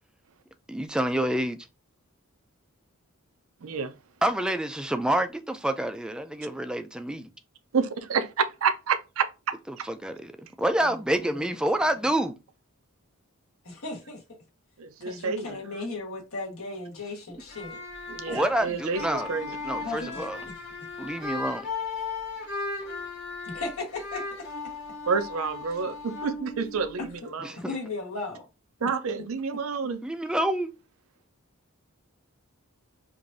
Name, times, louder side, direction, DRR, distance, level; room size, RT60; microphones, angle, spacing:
voice 1, 0.7-1.6 4.2-7.3 9.7-12.3 18.3-19.3 19.6-20.4 21.0-21.6 27.4-27.6 30.0-30.7, right 1 dB, 5° right, 0.3 m, -28 dB
voice 2, 3.6-3.9 7.7-9.8 14.8-15.6 18.1-19.6 25.1-27.5 28.8-30.0, right 5 dB, 70° right, 0.5 m, -29 dB
voice 3, 13.6-14.2 15.0-17.8 18.3-18.4 19.8-20.5 23.4-24.7 27.0-27.1 27.7-28.5 28.8-28.9, left 3 dB, 75° left, 1.3 m, -36 dB
sound 1, 17.4-27.2, left 3 dB, 55° left, 1.9 m, -37 dB
4.8 x 2.6 x 2.5 m
head